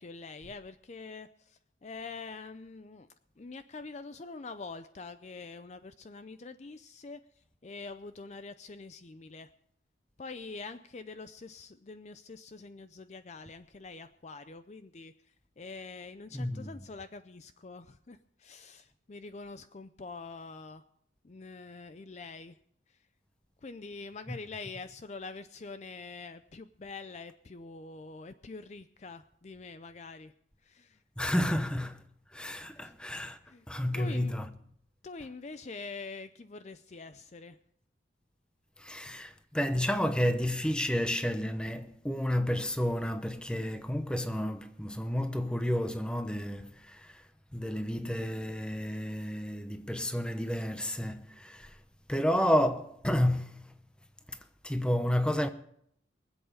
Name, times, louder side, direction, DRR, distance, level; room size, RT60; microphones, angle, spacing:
voice 1, 0.0-3.1 3.4-9.5 10.2-15.1 15.6-20.8 21.2-22.6 22.9-23.0 23.6-30.3 30.6-31.0 32.8-32.9 33.5-33.7 33.9-34.4 35.0-37.6, left 4 dB, 35° left, 0.5 m, -45 dB
voice 2, 16.3-16.8 24.3-24.4 31.2-32.0 32.3-33.4 33.7-34.5 38.8-47.2 47.5-51.8 52.1-53.7 54.3-54.4 54.6-55.5, equal, 5° left, 0.8 m, -31 dB
24.0 x 8.0 x 5.0 m
head